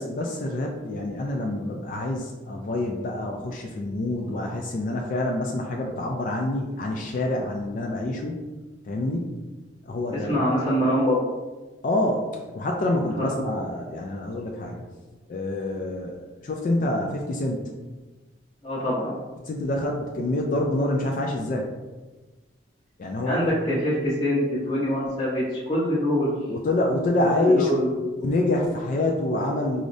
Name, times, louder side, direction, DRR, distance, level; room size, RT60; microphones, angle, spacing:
voice 1, 0.0-8.3 8.9-9.2 9.9-10.4 11.8-12.3 12.5-14.8 15.3-17.7 19.5-21.7 23.0-23.4 26.5-29.8, left 1 dB, 45° left, 0 dB, 0.3 m, -26 dB
voice 2, 10.1-11.2 13.1-13.4 18.6-19.2 23.2-26.3 27.2-27.9, equal, 25° left, -12 dB, 0.9 m, -24 dB
4.9 x 2.0 x 2.6 m, 1.2 s
head